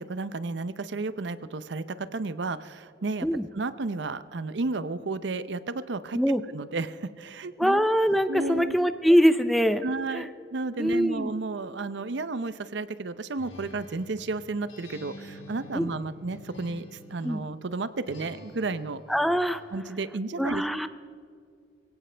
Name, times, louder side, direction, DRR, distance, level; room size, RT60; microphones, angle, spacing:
voice 1, 0.0-3.3 3.5-6.2 6.5-7.9 8.3-8.8 9.8-19.0 19.7-20.6, right 3 dB, 65° right, 14 dB, 0.6 m, -32 dB
voice 2, 7.6-9.8 10.1-10.3 10.8-11.3 15.7-15.9 17.2-17.4 19.1-19.6 20.4-20.9, equal, ahead, 11 dB, 0.5 m, -23 dB
Acoustic guitar, 13.4-17.5 18.1-19.6, left 1 dB, 90° left, 3.7 m, -48 dB
23.0 x 17.0 x 3.3 m, 2.3 s
head